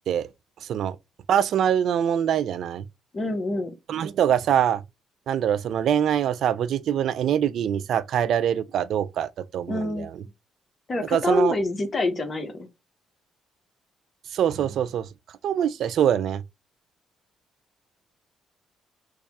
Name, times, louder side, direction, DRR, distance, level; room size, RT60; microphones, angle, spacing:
voice 1, 0.6-1.0 1.3-2.8 3.9-4.8 5.3-10.1 11.1-11.5 14.3-15.1 15.4-16.4, right 9 dB, 70° right, 0.3 m, -24 dB
voice 2, 3.1-3.7 9.7-10.1 10.9-12.7, left 2 dB, 35° left, 1.0 m, -26 dB
3.2 x 2.3 x 4.0 m
cardioid pair, 90°, 0 cm